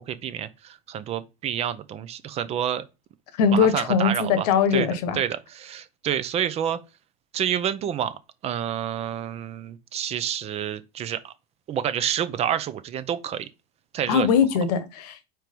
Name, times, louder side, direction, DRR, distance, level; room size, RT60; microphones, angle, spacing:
voice 1, 0.0-2.8 3.5-4.5 4.7-6.8 7.3-11.3 11.7-13.5 13.9-14.3, right 9 dB, 30° right, 0.6 m, -28 dB
voice 2, 3.4-5.2 14.1-15.3, left 6 dB, 85° left, 1.1 m, -21 dB
4.6 x 4.5 x 5.2 m
supercardioid pair, 140°, 20 cm